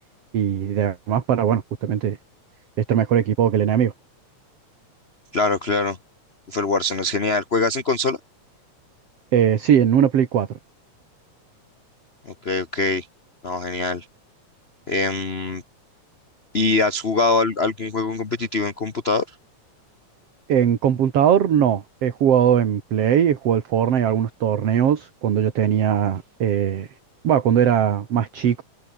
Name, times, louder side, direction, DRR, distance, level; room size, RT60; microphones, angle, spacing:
voice 1, 0.3-2.2 2.8-3.9 9.3-10.5 20.5-26.9 27.2-28.6, right 9 dB, 55° right, 2.7 m, -20 dB
voice 2, 5.3-6.0 6.5-8.2 12.3-13.1 13.4-14.1 14.9-15.6 16.5-19.2, left 3 dB, 45° left, 0.8 m, -23 dB
omnidirectional pair, 3.3 m